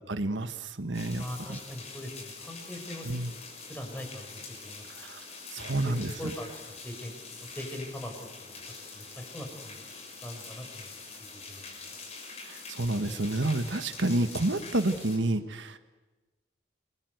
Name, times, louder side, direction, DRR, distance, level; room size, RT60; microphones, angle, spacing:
voice 1, 0.0-1.6 3.1-3.3 5.0-5.3 5.5-6.1 12.4-15.8, right 2 dB, 80° right, 8 dB, 1.5 m, -29 dB
sound 1, 0.9-15.2, left 4 dB, 35° left, 5.9 m, -45 dB
voice 2, 1.2-3.4 3.7-4.8 5.6-6.5 6.8-9.8 10.2-10.9 11.5-11.8, equal, 10° left, 4 dB, 5.9 m, -41 dB
29.0 x 22.0 x 8.1 m, 1.2 s
head